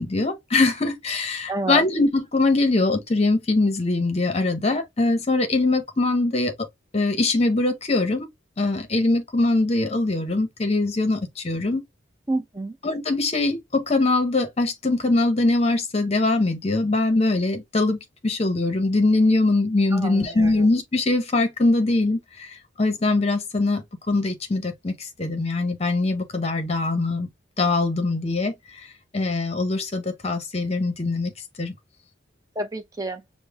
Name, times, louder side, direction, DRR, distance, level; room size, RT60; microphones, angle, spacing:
voice 1, 0.0-6.7 6.9-8.3 8.6-11.8 12.8-22.2 22.8-27.3 27.6-28.5 29.1-31.3 31.6-31.7, left 2 dB, 30° left, 0.8 m, -22 dB
voice 2, 1.5-1.8 12.3-12.8 19.9-20.5 32.6-33.2, right 2 dB, 20° right, 0.7 m, -29 dB
5.2 x 2.1 x 3.5 m
head